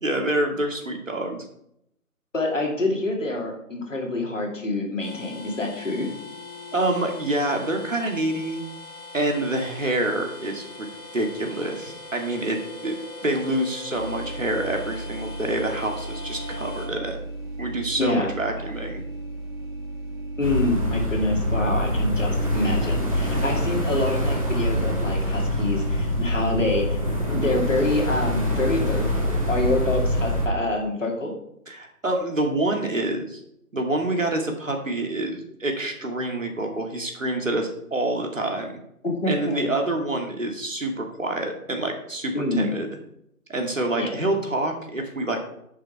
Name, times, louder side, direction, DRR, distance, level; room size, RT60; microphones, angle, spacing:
voice 1, 0.0-1.5 6.7-8.6 9.1-10.9 11.1-13.0 13.2-17.2 17.6-19.0 31.7-33.4 33.7-38.8 39.3-42.9 43.5-45.4, right 1 dB, 55° right, 3 dB, 2.3 m, -27 dB
voice 2, 2.3-6.1 18.0-18.3 20.4-27.0 27.3-31.3 39.0-39.7 42.3-42.7 44.0-44.1, left 2 dB, 55° left, 0 dB, 2.8 m, -26 dB
sound 1, 5.0-16.9, left 3 dB, 15° left, 2.7 m, -41 dB
sound 2, 13.9-26.3, right 2 dB, 5° right, 2.7 m, -35 dB
sound 3, 20.4-30.5, equal, 20° right, 1.5 m, -25 dB
10.0 x 7.3 x 4.5 m, 0.75 s
figure-of-eight pair, 180°, 45 cm